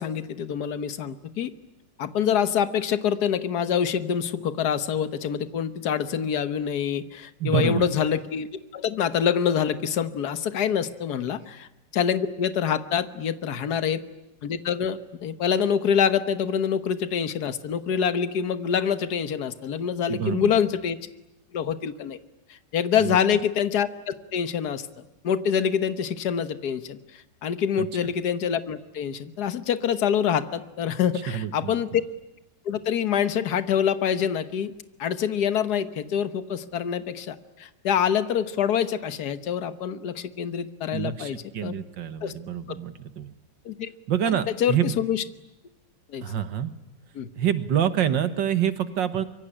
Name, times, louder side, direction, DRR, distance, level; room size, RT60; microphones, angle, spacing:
voice 1, 0.0-1.5 2.0-8.5 8.7-11.7 11.9-14.0 14.4-21.0 21.5-22.2 22.7-27.0 27.4-32.0 32.6-34.7 35.0-41.7 42.2-42.3 42.7-42.8 43.6-43.9 44.6-45.2 46.1-46.2 47.1-47.3, left 8 dB, 60° left, 11 dB, 1.7 m, -26 dB
voice 2, 7.4-7.9 13.8-13.9 20.1-20.5 23.0-23.2 27.8-27.9 31.3-31.8 40.9-43.3 44.1-45.0 46.2-46.7 47.4-49.2, right 9 dB, 80° right, 12 dB, 2.1 m, -26 dB
25.0 x 23.5 x 10.0 m, 0.95 s
omnidirectional pair, 1.9 m